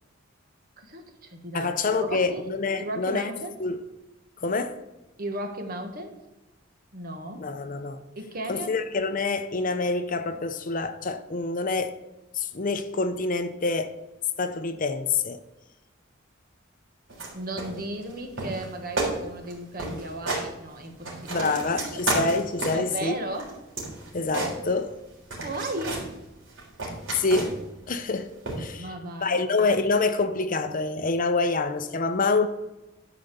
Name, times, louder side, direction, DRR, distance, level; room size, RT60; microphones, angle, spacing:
voice 1, 0.8-2.5 2.8-3.6 5.2-6.1 6.9-7.5 8.1-8.8 17.3-22.0 22.7-23.5 25.4-26.1 28.8-29.5, right 1 dB, 50° right, 1.5 m, -35 dB
voice 2, 1.5-3.3 3.6-3.8 4.4-4.8 7.4-8.0 8.5-12.0 12.3-13.9 14.4-15.4 21.3-23.1 24.1-24.9 27.1-27.5 27.9-28.3 28.6-28.9 29.2-32.5, left 3 dB, 45° left, 0.7 m, -26 dB
sound 1, 17.1-17.3 17.6-18.1 18.4-18.7 19.0-19.1 19.4-19.5 19.8-20.5 20.8-22.9 23.3-25.0 25.3-26.1 26.5-27.7 28.5-28.7, right 2 dB, 75° right, 3.7 m, -31 dB
12.0 x 5.0 x 6.8 m
head